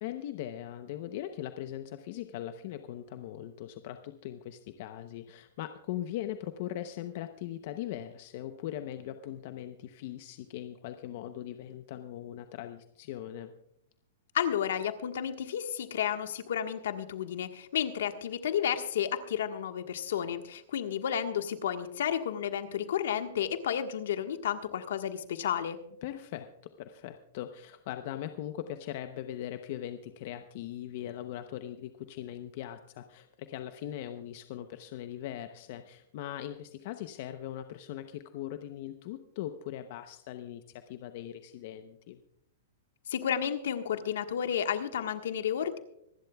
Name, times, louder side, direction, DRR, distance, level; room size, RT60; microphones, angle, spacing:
voice 1, 0.0-13.5 26.0-42.2, left 12 dB, 55° left, 8 dB, 0.8 m, -40 dB
voice 2, 14.3-25.8 43.1-45.8, left 9 dB, 75° left, 7 dB, 1.4 m, -32 dB
26.0 x 11.5 x 2.3 m, 0.76 s
hypercardioid pair, 140°, 0 cm